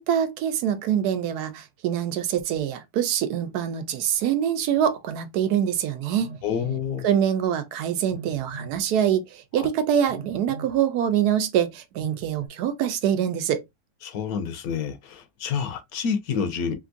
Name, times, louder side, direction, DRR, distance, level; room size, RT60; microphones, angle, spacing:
voice 1, 0.0-6.4 7.0-13.6, right 9 dB, 85° right, 1.1 m, -24 dB
Telephone, 6.2-6.9 8.1-8.8 10.1-10.8 12.0-12.5, right 3 dB, 55° right, 0.8 m, -40 dB
voice 2, 6.4-7.0 9.6-9.7 14.0-16.7, left 6 dB, 75° left, 1.1 m, -28 dB
3.5 x 2.5 x 2.5 m
omnidirectional pair, 1.6 m